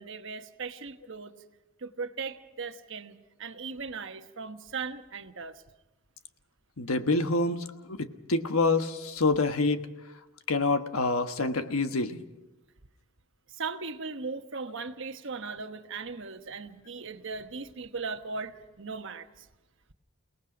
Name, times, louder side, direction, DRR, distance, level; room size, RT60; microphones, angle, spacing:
voice 1, 0.0-1.4 1.8-5.6 13.5-19.5, right 4 dB, 60° right, 8 dB, 1.1 m, -38 dB
voice 2, 6.8-9.9 10.5-12.2, left 3 dB, 85° left, 8 dB, 1.3 m, -27 dB
29.0 x 18.5 x 5.2 m, 1.0 s
head